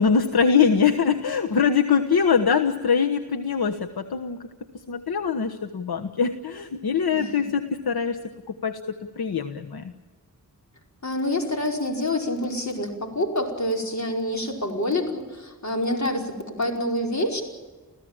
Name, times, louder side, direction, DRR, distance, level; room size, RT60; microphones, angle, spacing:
voice 1, 0.0-4.5 4.9-8.2 8.5-9.9, left 6 dB, 75° left, 6 dB, 1.3 m, -23 dB
voice 2, 11.0-17.4, left 1 dB, 45° left, 2 dB, 5.0 m, -27 dB
29.0 x 15.5 x 8.8 m, 1.3 s
wide cardioid pair, 95°, 38 cm